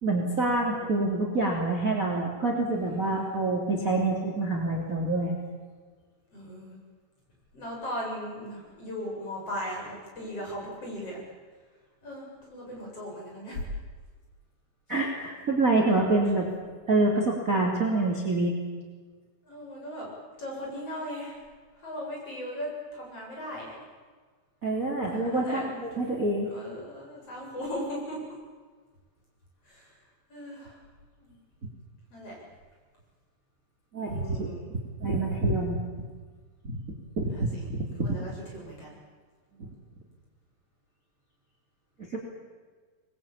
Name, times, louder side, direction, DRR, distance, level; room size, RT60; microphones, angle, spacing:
voice 1, 0.0-5.3 14.9-16.5 16.9-18.5 24.6-26.5 33.9-35.8 37.2-38.1 39.6-39.7 42.1-42.2, right 2 dB, 20° right, 1 dB, 3.1 m, -27 dB
voice 2, 2.7-3.4 6.3-6.8 7.5-11.2 12.0-13.6 19.5-20.1 20.4-21.4 21.8-23.8 25.1-25.8 26.5-28.2 29.7-29.9 30.3-30.8 31.2-31.4 32.1-32.4 34.0-34.6 37.3-37.6 38.0-39.0, equal, 35° left, -2 dB, 8.7 m, -38 dB
25.5 x 21.0 x 8.9 m, 1.5 s
omnidirectional pair, 4.7 m